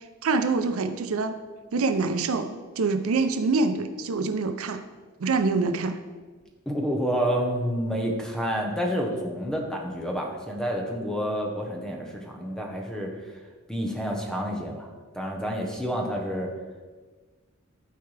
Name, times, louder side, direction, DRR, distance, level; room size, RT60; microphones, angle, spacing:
voice 1, 0.2-1.4 1.7-2.5 2.8-4.8 5.2-6.0, right 3 dB, 80° right, 8 dB, 0.5 m, -25 dB
voice 2, 6.7-13.1 13.7-14.9 15.1-16.5, equal, 5° left, 0 dB, 0.9 m, -29 dB
12.0 x 4.6 x 3.3 m, 1.4 s
head